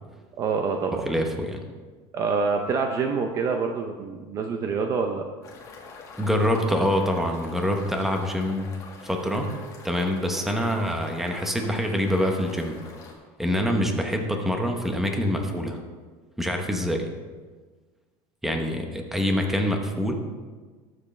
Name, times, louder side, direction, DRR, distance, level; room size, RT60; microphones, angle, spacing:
voice 1, 0.4-1.0 2.1-5.2, right 5 dB, 25° right, 4 dB, 0.6 m, -26 dB
voice 2, 1.0-1.6 6.2-8.7 9.0-9.5 9.8-12.8 13.4-15.8 16.4-17.1 18.4-20.1, equal, 5° right, 3 dB, 0.9 m, -25 dB
sound 1, 5.4-13.1, left 4 dB, 25° left, 1.7 m, -45 dB
19.5 x 7.8 x 3.3 m, 1.4 s
cardioid pair, 175°, 12 cm